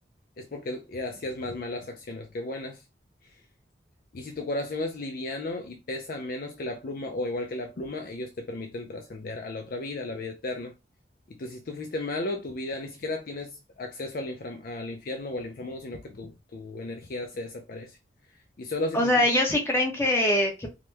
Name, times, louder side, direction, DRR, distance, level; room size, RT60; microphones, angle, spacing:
voice 1, 0.4-2.8 3.2-3.3 4.1-10.7 11.3-18.0 18.6-19.3, left 2 dB, 50° left, 0.4 m, -34 dB
voice 2, 18.9-20.7, left 1 dB, 15° left, 0.8 m, -23 dB
2.9 x 2.1 x 3.2 m
head